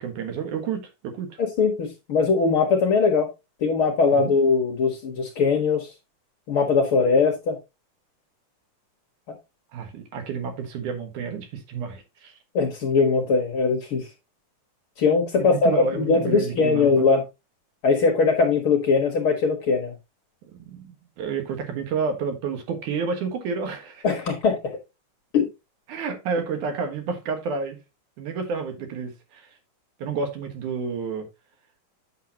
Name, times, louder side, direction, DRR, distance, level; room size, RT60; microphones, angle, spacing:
voice 1, 0.0-1.4 4.1-4.3 9.7-12.3 15.4-17.0 20.7-20.9 21.2-24.0 25.9-27.8 28.2-29.5 30.0-31.3, right 5 dB, 75° right, 2.9 m, -30 dB
voice 2, 1.4-3.3 3.6-5.9 6.5-7.6 12.5-14.1 15.0-17.2 17.8-19.9 24.0-24.6 25.3-25.5, left 4 dB, 50° left, 1.9 m, -21 dB
8.8 x 6.6 x 2.9 m
omnidirectional pair, 3.6 m